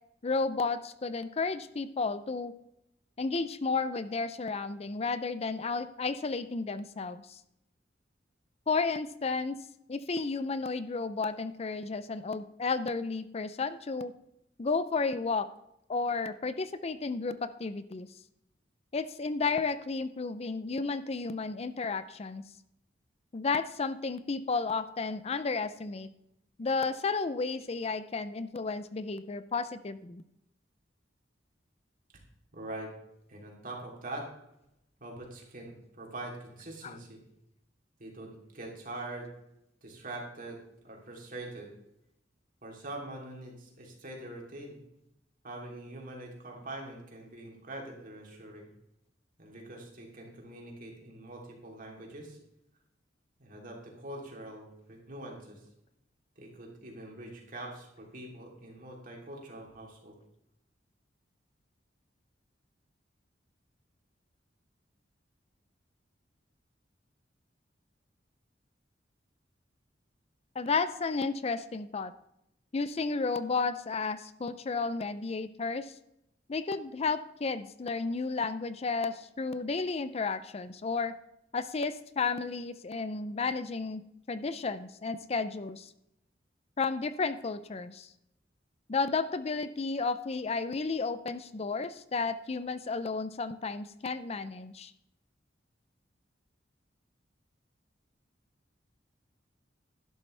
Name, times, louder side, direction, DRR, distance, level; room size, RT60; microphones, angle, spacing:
voice 1, 0.2-2.5 3.2-7.4 8.7-9.6 9.9-14.1 14.6-15.5 15.9-18.1 18.9-22.4 23.3-26.1 26.6-30.2 36.8-37.0 70.6-72.1 72.7-75.9 76.5-81.1 81.5-84.0 84.3-85.9 86.8-88.1 88.9-94.9, left 4 dB, 35° left, 13 dB, 0.5 m, -32 dB
voice 2, 32.5-32.9 33.3-34.3 35.0-37.2 38.0-39.3 39.8-40.6 40.8-41.7 42.6-44.8 45.4-48.6 49.4-52.4 53.4-55.6 56.4-60.1, right 2 dB, 50° right, -1 dB, 3.1 m, -43 dB
11.5 x 11.5 x 3.3 m, 0.81 s
head